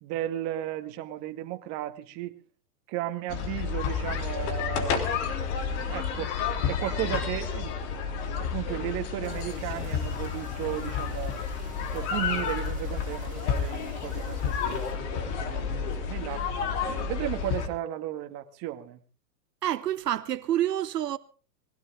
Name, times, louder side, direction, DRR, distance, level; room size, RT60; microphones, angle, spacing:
voice 1, 0.0-2.4 2.9-5.3 5.9-6.3 6.7-7.7 8.4-11.4 11.9-16.5 16.9-19.0, right 14 dB, 35° right, 2.1 m, -35 dB
sound 1, 3.3-17.7, left 6 dB, 45° left, 3.4 m, -30 dB
sound 2, 9.2-14.9, right 7 dB, 15° right, 6.4 m, -52 dB
voice 2, 19.6-21.2, right 12 dB, 85° right, 1.0 m, -28 dB
21.5 x 16.5 x 3.8 m
hypercardioid pair, 140°, 47 cm